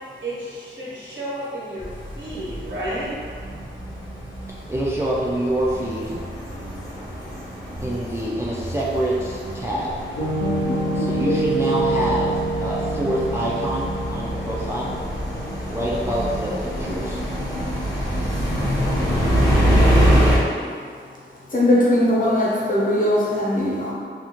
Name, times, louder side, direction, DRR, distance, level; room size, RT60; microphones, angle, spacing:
voice 1, 0.2-1.9 2.1-3.1, right 1 dB, 70° right, -8 dB, 1.1 m, -31 dB
sound 1, 1.8-20.4, equal, 15° left, 0.7 m, -25 dB
voice 2, 4.7-6.2 7.8-10.0 10.9-14.9 15.6-17.2, right 1 dB, 15° right, -6 dB, 0.3 m, -26 dB
Piano, 10.2-18.0, right 1 dB, 85° left, 0.5 m, -27 dB
voice 3, 21.5-23.9, left 1 dB, 40° left, -6 dB, 0.9 m, -19 dB
2.5 x 2.4 x 2.9 m, 2.1 s
wide cardioid pair, 65°, 20 cm